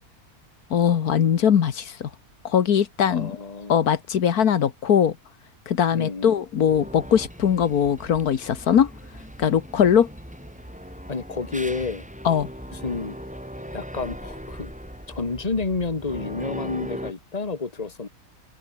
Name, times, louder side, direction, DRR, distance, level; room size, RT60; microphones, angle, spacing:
voice 1, 0.7-2.1 2.4-3.3 3.7-5.1 5.7-8.9 9.4-10.1 12.2-12.5, left 8 dB, 80° left, 1.7 m, -20 dB
voice 2, 3.1-3.8 5.9-6.3 11.1-12.1 12.7-13.2 13.7-14.7 15.1-18.1, left 4 dB, 25° left, 1.9 m, -30 dB
sound 1, 6.7-17.1, equal, 5° right, 5.2 m, -39 dB
open air
omnidirectional pair, 1.6 m